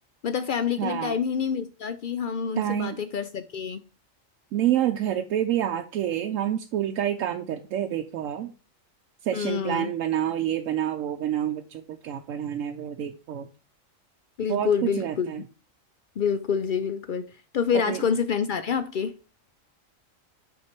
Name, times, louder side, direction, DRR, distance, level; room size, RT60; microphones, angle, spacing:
voice 1, 0.2-3.8 9.3-9.9 14.4-15.3 16.2-19.1, left 7 dB, 70° left, 0.5 m, -27 dB
voice 2, 0.8-1.2 2.6-3.0 4.5-8.5 9.2-13.5 14.5-15.4 17.8-18.0, right 11 dB, 80° right, 1.0 m, -28 dB
5.9 x 4.6 x 4.3 m
omnidirectional pair, 1.4 m